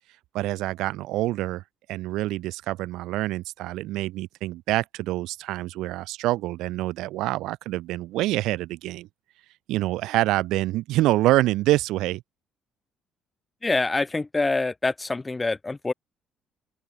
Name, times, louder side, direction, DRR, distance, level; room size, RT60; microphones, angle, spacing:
voice 1, 0.3-1.6 1.9-9.1 9.7-12.2, right 17 dB, 75° right, 6.3 m, -26 dB
voice 2, 13.6-15.9, left 3 dB, 10° left, 4.5 m, -25 dB
open air
cardioid pair, 175°, 0 cm